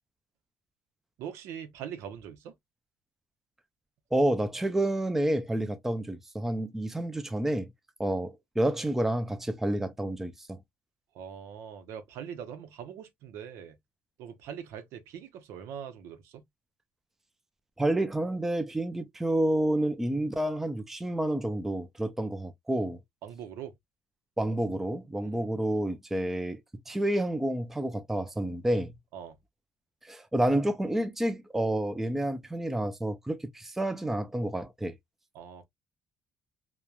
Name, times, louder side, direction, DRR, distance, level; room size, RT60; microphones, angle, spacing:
voice 1, 1.2-2.5 11.1-13.8 14.2-16.4 23.2-23.7 25.2-25.5 29.1-29.4 35.3-35.6, right 8 dB, 80° right, 0.7 m, -42 dB
voice 2, 4.1-7.7 8.0-10.6 17.8-23.0 24.4-26.6 26.9-28.9 30.0-35.0, right 1 dB, 5° right, 0.4 m, -29 dB
3.0 x 2.1 x 2.3 m
cardioid pair, 120°, 5 cm